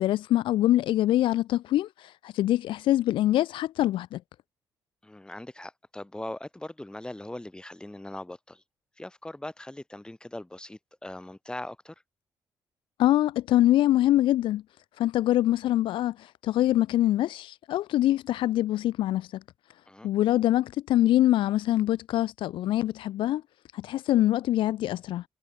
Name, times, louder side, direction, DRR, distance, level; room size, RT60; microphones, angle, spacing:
voice 1, 0.0-4.2 13.0-14.6 15.0-19.4 20.0-23.4 23.7-25.2, left 14 dB, 80° left, 0.6 m, -24 dB
voice 2, 5.0-8.6 9.0-12.0 19.9-20.1, left 1 dB, 10° left, 5.6 m, -40 dB
cardioid pair, 80°, 9 cm